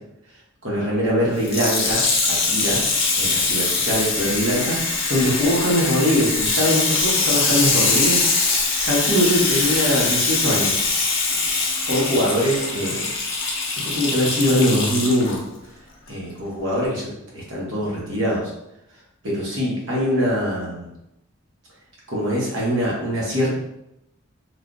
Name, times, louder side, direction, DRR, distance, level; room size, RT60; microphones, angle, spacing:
voice 1, 0.6-2.0 2.5-8.5 8.8-10.8 11.9-13.1 13.8-15.4 16.1-18.5 19.2-20.9 22.1-23.5, equal, 60° right, -5 dB, 1.0 m, -22 dB
Water tap faucet / Sink (filling or washing), 1.4-15.4 16.1-16.2, left 3 dB, 60° left, 0.7 m, -22 dB
3.3 x 2.3 x 2.5 m, 0.85 s
head